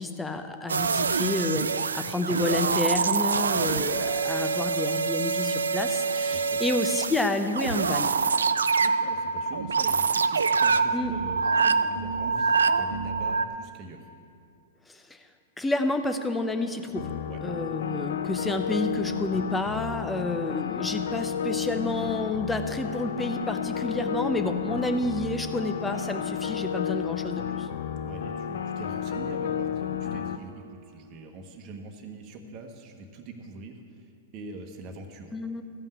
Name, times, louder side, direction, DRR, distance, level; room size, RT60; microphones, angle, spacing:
voice 1, 0.0-8.1 10.9-11.1 14.9-15.2 15.6-17.1 17.4-27.7 35.3-35.6, left 2 dB, 10° left, 7 dB, 0.8 m, -30 dB
sound 1, 0.7-13.5, right 5 dB, 80° right, 0.4 m, -25 dB
voice 2, 8.8-14.1 17.3-17.4 28.0-35.5, right 3 dB, 35° right, 3 dB, 1.3 m, -43 dB
sound 2, 17.0-30.4, left 8 dB, 65° left, 0.6 m, -32 dB
14.0 x 5.5 x 7.9 m, 2.5 s
hypercardioid pair, 110°, 0 cm